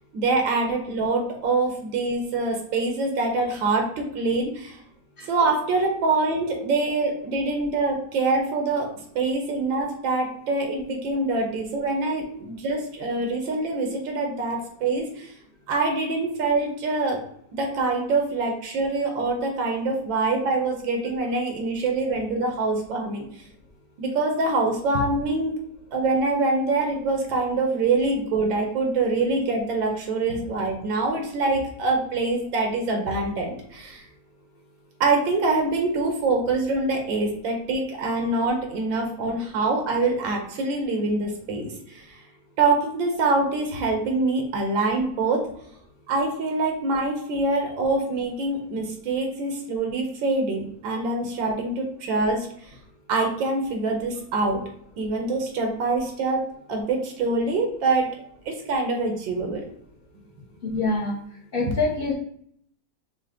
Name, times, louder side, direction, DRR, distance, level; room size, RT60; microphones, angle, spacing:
voice 1, 0.1-4.8 5.3-8.9 9.1-15.3 15.7-17.2 17.6-23.2 24.0-25.6 25.9-34.0 35.0-42.0 42.6-45.5 46.1-52.7 53.1-54.7 55.0-58.1 58.4-59.6, right 3 dB, 90° right, 2 dB, 1.7 m, -25 dB
voice 2, 60.6-62.1, left 3 dB, 50° left, -1 dB, 0.7 m, -26 dB
6.3 x 2.3 x 3.5 m, 0.67 s
omnidirectional pair, 2.0 m